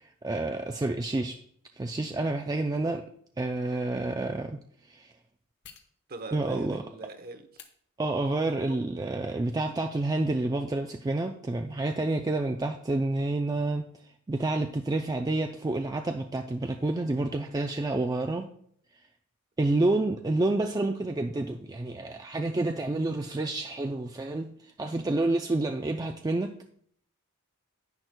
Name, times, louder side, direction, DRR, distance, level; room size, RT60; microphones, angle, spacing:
voice 1, 0.0-1.4 1.8-3.0 3.4-4.6 4.9-5.1 6.3-6.8 8.0-13.9 14.3-18.5 19.6-26.5, right 2 dB, 15° right, 0.4 m, -29 dB
sound 1, 3.7-3.8 5.6-5.9 7.5-7.7 8.3-8.9 9.3-9.4, left 4 dB, 55° left, 1.0 m, -49 dB
voice 2, 6.1-7.5, right 2 dB, 45° right, 0.8 m, -41 dB
10.5 x 9.3 x 2.2 m
head